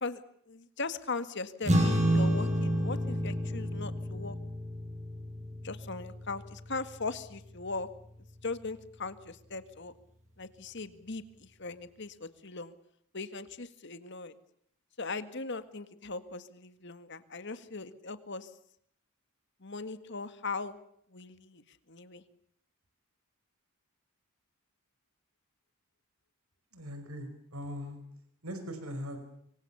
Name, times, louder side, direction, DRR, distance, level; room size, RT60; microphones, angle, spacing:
voice 1, 0.0-4.4 5.6-7.9 8.4-9.9 10.4-12.7 13.1-14.3 15.0-18.5 19.6-20.8 21.1-22.2, left 3 dB, 55° left, 11 dB, 1.8 m, -39 dB
sound 1, 1.6-8.3, equal, 30° right, 6.6 m, -30 dB
voice 2, 26.7-28.0 28.4-29.2, equal, 85° right, 8 dB, 4.9 m, -40 dB
25.5 x 24.5 x 7.0 m, 0.69 s
head